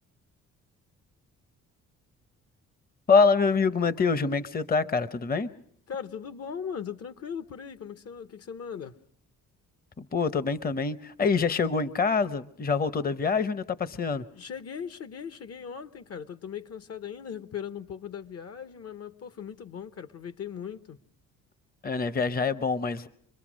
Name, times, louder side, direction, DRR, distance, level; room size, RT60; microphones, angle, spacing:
voice 1, 3.1-5.5 10.0-14.2 21.8-23.1, left 4 dB, 30° left, 0.8 m, -25 dB
voice 2, 5.9-9.0 13.9-14.1 14.3-21.0, left 7 dB, 55° left, 1.0 m, -39 dB
26.5 x 22.0 x 6.2 m
cardioid pair, 90°, 30 cm